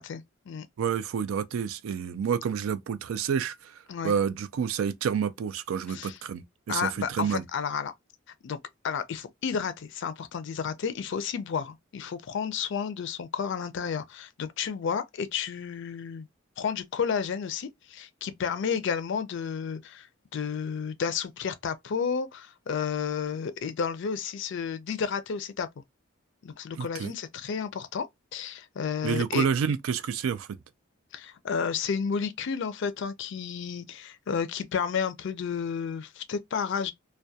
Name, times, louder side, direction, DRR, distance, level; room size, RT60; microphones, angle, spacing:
voice 1, 0.0-0.7 3.9-4.1 5.9-6.2 6.7-7.9 8.4-8.6 8.8-16.3 16.6-20.1 20.3-25.7 26.4-28.1 28.3-29.5 31.1-36.9, left 6 dB, 60° left, 0.4 m, -31 dB
voice 2, 0.8-3.7 4.0-7.4 26.8-27.1 29.0-30.5, right 7 dB, 80° right, 0.3 m, -29 dB
2.2 x 2.2 x 2.6 m
head